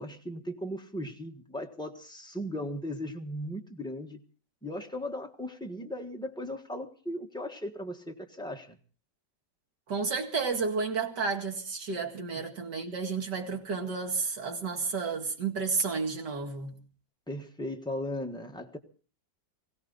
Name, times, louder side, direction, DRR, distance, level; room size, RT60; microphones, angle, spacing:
voice 1, 0.0-4.2 4.6-8.8 17.3-18.8, left 1 dB, 5° left, 1.3 m, -37 dB
voice 2, 9.9-16.8, right 4 dB, 60° right, 2.8 m, -31 dB
21.0 x 16.5 x 4.0 m
omnidirectional pair, 2.1 m